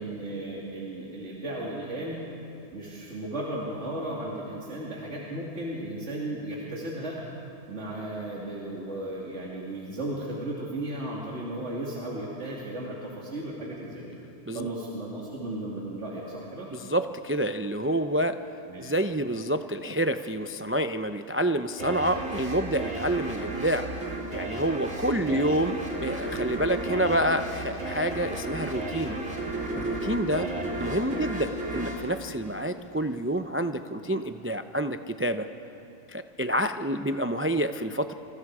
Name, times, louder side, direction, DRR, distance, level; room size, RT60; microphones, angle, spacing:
voice 1, 0.0-2.2 2.7-7.2 7.7-14.0 14.5-16.7 18.7-18.8 25.2-25.4 31.1-31.2, right 1 dB, 70° right, -5 dB, 3.1 m, -35 dB
voice 2, 16.7-18.4 18.8-23.9 24.3-29.2 29.8-30.5 30.8-35.5 36.1-38.1, right 1 dB, 15° right, 8 dB, 0.4 m, -28 dB
sound 1, 21.8-33.1, right 1 dB, 85° right, 3.2 m, -34 dB
28.0 x 26.0 x 4.9 m, 2.9 s
omnidirectional pair, 1.3 m